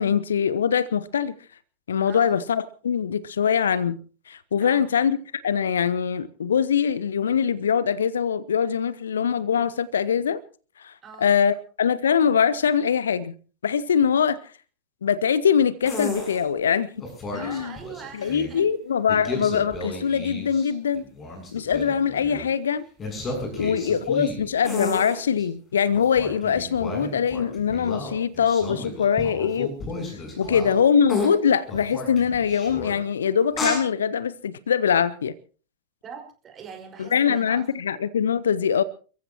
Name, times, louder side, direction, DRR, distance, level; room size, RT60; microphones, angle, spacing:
voice 1, 0.0-1.4 1.9-4.0 4.3-5.2 5.4-10.4 10.8-13.3 13.6-14.4 15.0-16.9 17.3-17.7 18.1-21.1 21.5-22.8 23.6-29.7 30.4-35.3 37.0-38.8, left 7 dB, 65° left, 0.7 m, -23 dB
voice 2, 2.1-2.4 4.6-4.9 11.0-11.3 17.3-18.7 23.6-23.9 30.4-30.7 36.0-37.7, right 7 dB, 25° right, 5.0 m, -42 dB
sound 1, 15.8-16.4 17.0-18.6 19.1-20.7 21.0-22.5 23.0-25.4 25.9-30.8 31.1-31.3 31.7-32.9 33.5-33.8, left 2 dB, 25° left, 7.4 m, -32 dB
29.5 x 14.5 x 2.9 m
figure-of-eight pair, 90°, 0 cm